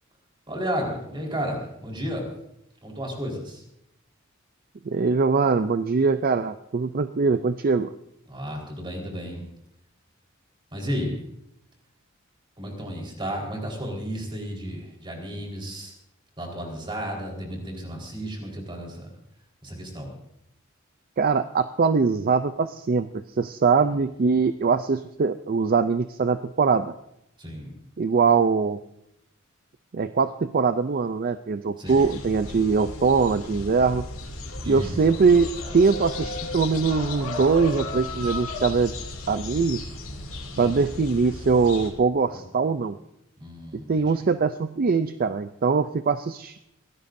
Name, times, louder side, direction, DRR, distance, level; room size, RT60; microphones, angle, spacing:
voice 1, 0.5-2.3 2.8-3.6 8.3-9.4 10.7-11.2 12.6-15.9 16.4-19.1 19.6-20.2 23.8-24.0 27.4-27.7 31.8-32.0 34.6-35.0 40.6-40.7 43.4-44.2, equal, 25° right, -1 dB, 4.4 m, -33 dB
voice 2, 4.9-7.9 21.2-23.1 23.4-26.9 28.0-28.8 29.9-34.1 34.7-35.5 35.7-38.9 39.3-39.8 40.6-43.0 43.9-46.6, right 4 dB, 45° right, 11 dB, 0.4 m, -22 dB
sound 1, 31.9-41.9, left 2 dB, 90° left, 2.7 m, -35 dB
23.0 x 17.5 x 2.7 m, 0.80 s
head